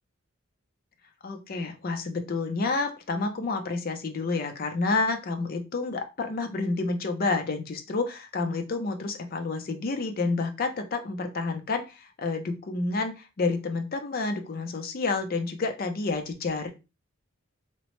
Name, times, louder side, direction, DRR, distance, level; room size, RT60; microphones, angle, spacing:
voice 1, 1.2-16.7, left 3 dB, 45° left, 6 dB, 0.4 m, -29 dB
2.9 x 2.1 x 2.9 m, 0.27 s
head